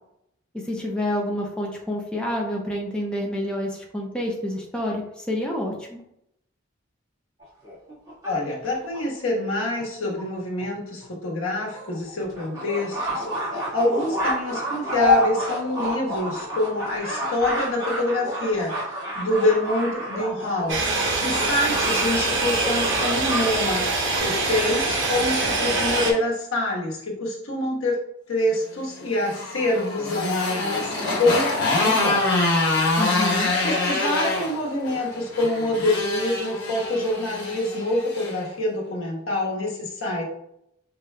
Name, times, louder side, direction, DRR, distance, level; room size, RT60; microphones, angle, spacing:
voice 1, 0.5-6.0 33.0-33.5, left 1 dB, 5° left, -2 dB, 0.6 m, -28 dB
sound 1, 7.4-9.0 9.8-9.9 10.2-10.3 10.6-10.7 11.0-11.1 11.6-23.5 23.8-24.2, left 1 dB, 15° right, 1.5 m, -29 dB
voice 2, 8.2-23.9 24.2-28.0 28.3-32.2 32.6-32.7 33.6-40.3, left 1 dB, 90° left, -2 dB, 1.2 m, -26 dB
sound 2, 20.7-26.1, right 3 dB, 60° right, 0.9 m, -24 dB
Motorcycle, 29.0-38.4, left 2 dB, 55° left, 1.2 m, -25 dB
5.2 x 2.3 x 3.2 m, 0.78 s
head